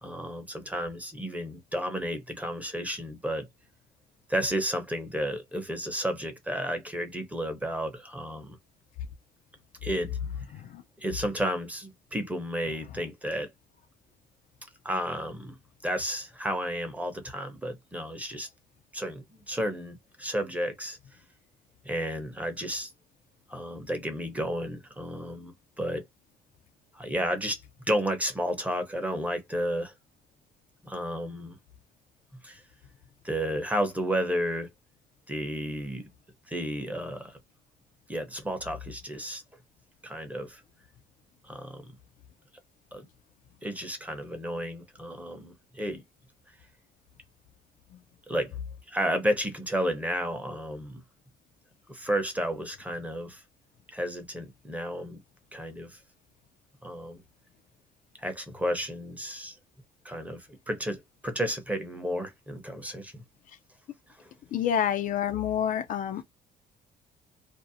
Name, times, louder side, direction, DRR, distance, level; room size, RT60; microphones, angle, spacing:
voice 1, 0.0-3.5 4.3-8.6 9.8-10.2 11.0-13.5 14.8-15.6 15.8-18.5 18.9-21.0 21.8-22.9 23.5-26.0 26.9-27.6 27.9-29.9 30.8-31.6 32.4-32.6 33.2-34.7 35.3-36.1 36.5-37.4 38.1-39.4 40.0-40.6 41.4-41.9 42.9-43.1 43.6-46.0 48.3-48.6 48.9-51.0 51.9-53.4 53.9-55.2 55.5-56.0 56.8-57.2 58.2-59.6 60.0-63.2 64.2-64.3, equal, 10° right, 0.7 m, -32 dB
voice 2, 64.5-66.2, left 9 dB, 55° left, 0.4 m, -28 dB
2.5 x 2.0 x 2.6 m
cardioid pair, 110°, 17 cm